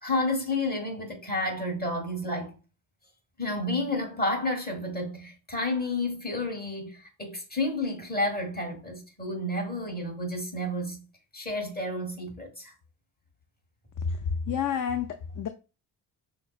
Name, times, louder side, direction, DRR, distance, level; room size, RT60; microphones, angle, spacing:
voice 1, 0.0-2.6 3.4-11.1 11.3-12.7, left 2 dB, 20° left, 1.5 m, -31 dB
voice 2, 14.5-15.5, left 7 dB, 45° left, 0.4 m, -29 dB
5.7 x 2.1 x 2.4 m
cardioid pair, 65°, 48 cm